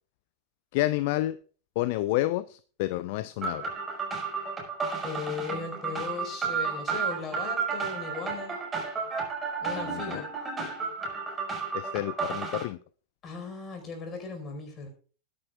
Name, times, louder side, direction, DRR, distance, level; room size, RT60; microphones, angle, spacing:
voice 1, 0.7-1.4 1.8-3.7 9.8-10.2 11.7-12.8, left 16 dB, 50° left, 17 dB, 0.5 m, -29 dB
sound 1, 3.4-12.6, right 5 dB, 20° right, 5.1 m, -32 dB
voice 2, 5.0-8.6 9.6-10.3 13.2-14.9, left 5 dB, 25° left, 5 dB, 4.7 m, -37 dB
20.5 x 10.0 x 2.4 m, 0.40 s
figure-of-eight pair, 90°, 0 cm